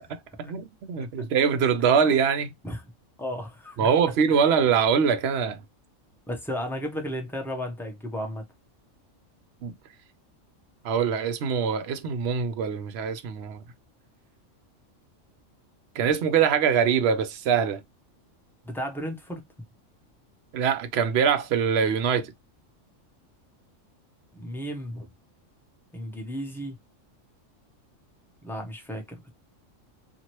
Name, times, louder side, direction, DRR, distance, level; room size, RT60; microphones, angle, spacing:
voice 1, 0.1-2.5 3.8-5.6 9.6-9.7 10.8-13.6 15.9-17.8 20.5-22.3, right 7 dB, 65° right, 0.7 m, -23 dB
voice 2, 3.2-3.9 6.3-8.4 18.6-19.4 24.3-25.1 25.9-26.8 28.4-29.3, equal, ahead, 0.6 m, -34 dB
2.8 x 2.5 x 2.9 m
omnidirectional pair, 1.3 m